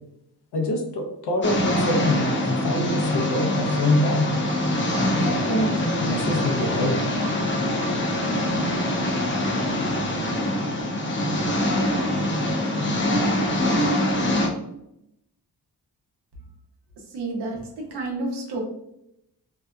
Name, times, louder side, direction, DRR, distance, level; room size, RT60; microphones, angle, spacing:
voice 1, 0.5-4.3 5.0-7.0, left 1 dB, 80° left, 2 dB, 0.7 m, -25 dB
sound 1, 1.4-14.5, left 1 dB, 30° left, 0.5 m, -24 dB
voice 2, 17.1-18.6, right 2 dB, 85° right, -1 dB, 0.8 m, -30 dB
2.7 x 2.3 x 2.2 m, 0.81 s
wide cardioid pair, 110°, 39 cm